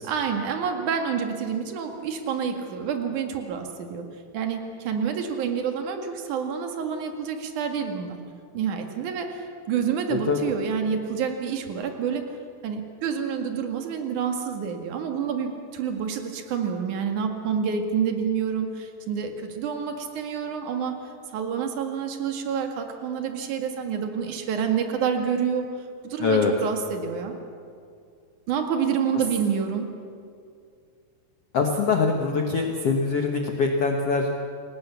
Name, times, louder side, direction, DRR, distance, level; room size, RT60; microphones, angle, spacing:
voice 1, 0.0-4.1 4.3-8.2 8.5-12.3 12.6-21.0 21.3-25.7 26.0-27.3 28.5-29.9, right 7 dB, 50° right, 4 dB, 3.0 m, -28 dB
voice 2, 10.1-10.5 26.2-26.5 31.5-34.3, left 4 dB, 90° left, 2 dB, 1.3 m, -23 dB
29.0 x 18.5 x 7.1 m, 2.3 s
omnidirectional pair, 5.2 m